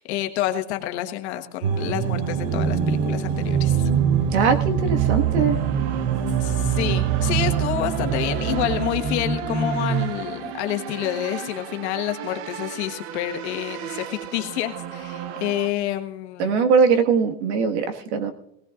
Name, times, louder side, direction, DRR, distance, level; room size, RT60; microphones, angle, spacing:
voice 1, 0.0-3.9 6.4-16.6, left 13 dB, 85° left, 6 dB, 1.5 m, -28 dB
sound 1, 1.6-15.7, right 11 dB, 70° right, 1.0 m, -28 dB
sound 2, 1.7-10.0, right 5 dB, 25° right, 2.5 m, -26 dB
voice 2, 4.3-5.6 16.4-18.3, right 5 dB, 90° right, 6 dB, 1.7 m, -21 dB
18.5 x 18.0 x 2.5 m, 0.83 s
cardioid pair, 170°, 33 cm